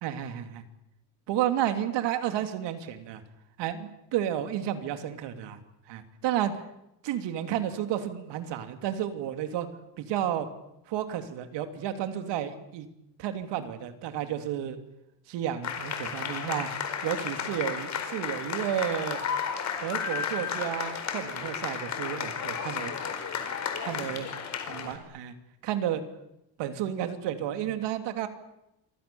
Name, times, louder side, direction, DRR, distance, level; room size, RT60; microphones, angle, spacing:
voice 1, 0.0-0.6 1.3-3.2 3.6-5.6 5.9-6.6 7.0-9.7 10.0-10.5 10.9-12.9 13.2-14.8 15.3-16.7 17.0-19.2 19.8-22.9 23.8-24.3 24.7-25.3 25.6-26.0 26.6-28.3, right 10 dB, 90° right, 8 dB, 3.1 m, -31 dB
sound 1, 15.6-25.0, left 7 dB, 40° left, 4.4 m, -33 dB
28.5 x 24.5 x 7.1 m, 0.86 s
cardioid pair, 170°, 41 cm